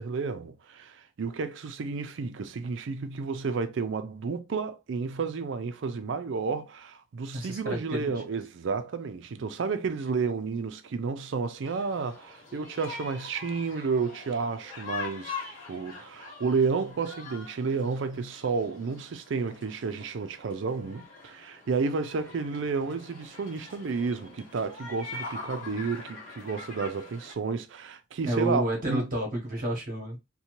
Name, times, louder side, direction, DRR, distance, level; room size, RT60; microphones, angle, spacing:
voice 1, 0.0-15.4 15.7-29.1, right 4 dB, 60° right, 0.4 m, -31 dB
voice 2, 7.3-8.1 28.3-30.2, right 1 dB, 40° right, 0.8 m, -30 dB
sound 1, 11.6-27.3, left 4 dB, 40° left, 1.1 m, -44 dB
2.6 x 2.2 x 2.8 m
head